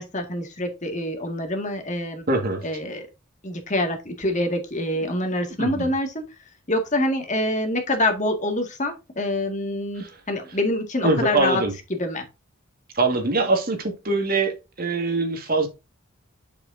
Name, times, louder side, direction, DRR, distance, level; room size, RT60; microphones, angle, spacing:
voice 1, 0.0-2.2 2.6-3.0 3.4-6.2 6.7-11.6 12.0-12.2, left 1 dB, 35° left, 1.8 m, -26 dB
voice 2, 2.3-2.6 5.0-5.9 10.0-10.1 11.0-11.7 12.9-15.7, right 3 dB, 45° right, 1.7 m, -24 dB
8.8 x 7.1 x 2.6 m
head